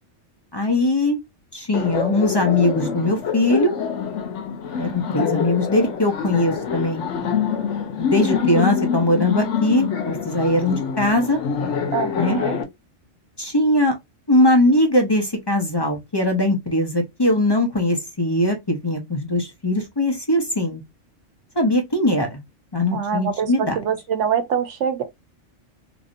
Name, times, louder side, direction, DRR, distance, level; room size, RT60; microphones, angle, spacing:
voice 1, 0.5-1.2 1.5-3.7 4.8-7.0 8.0-11.4 12.2-12.4 13.4-13.9 14.3-20.8 21.6-22.4 22.7-23.7, left 1 dB, 25° left, 0.6 m, -20 dB
Laughter, 1.7-12.6, left 7 dB, 75° left, 1.0 m, -25 dB
voice 2, 11.9-12.6 22.9-25.0, right 7 dB, 75° right, 1.0 m, -25 dB
3.2 x 2.6 x 2.4 m
omnidirectional pair, 1.3 m